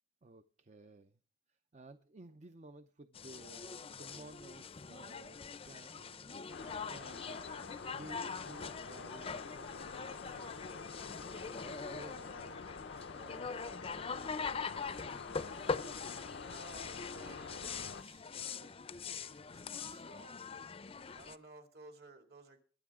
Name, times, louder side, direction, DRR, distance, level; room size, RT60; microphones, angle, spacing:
voice 1, 0.2-1.2 1.5-6.5 6.8-11.3 11.6-12.6 13.1-14.3, right 2 dB, 40° right, 10 dB, 0.6 m, -55 dB
sound 1, 3.1-21.4, left 5 dB, 30° left, 0.5 m, -43 dB
sound 2, 6.5-18.0, left 5 dB, 90° left, 0.6 m, -47 dB
voice 2, 16.4-20.4 21.1-22.6, right 2 dB, 60° right, 4 dB, 2.5 m, -56 dB
22.5 x 8.4 x 3.6 m, 0.42 s
head